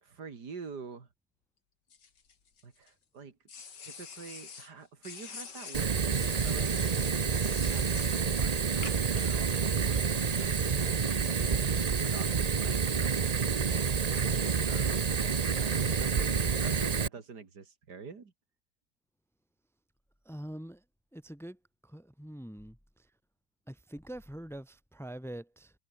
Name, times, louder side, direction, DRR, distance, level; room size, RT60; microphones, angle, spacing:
voice 1, 0.0-1.1 2.6-3.4 3.8-6.7 7.5-11.7 12.0-13.2 14.0-18.3, right 5 dB, 70° right, 3.0 m, -46 dB
sound 1, 1.9-2.9 3.5-4.7 5.0-8.2 8.8-9.2, left 6 dB, 85° left, 2.8 m, -46 dB
Fire, 5.7-17.1, right 6 dB, 50° right, 0.4 m, -28 dB
voice 2, 20.3-20.8 21.1-21.6 21.8-22.8 23.7-25.7, right 1 dB, ahead, 2.2 m, -44 dB
omnidirectional pair, 1.8 m